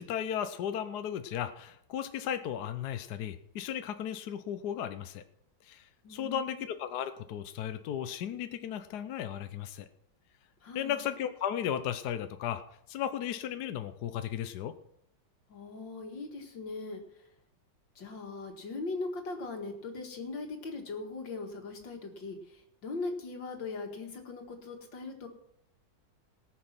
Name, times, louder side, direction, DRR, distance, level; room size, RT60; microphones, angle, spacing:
voice 1, 0.0-5.2 5.6-9.9 10.7-12.6 12.9-14.7, left 9 dB, 70° left, 9 dB, 1.2 m, -35 dB
voice 2, 6.0-6.6 10.6-11.0 15.5-17.0 18.0-25.3, left 3 dB, 85° left, 3 dB, 2.6 m, -40 dB
18.5 x 6.7 x 6.0 m, 0.72 s
omnidirectional pair, 1.9 m